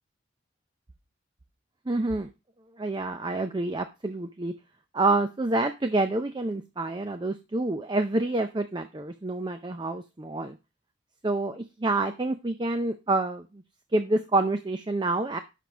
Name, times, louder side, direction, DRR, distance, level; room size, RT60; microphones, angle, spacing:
voice 1, 1.9-2.3 2.8-4.5 4.9-10.6 11.2-13.5 13.9-15.4, right 2 dB, 25° right, 8 dB, 0.5 m, -27 dB
5.9 x 5.1 x 6.1 m, 0.27 s
head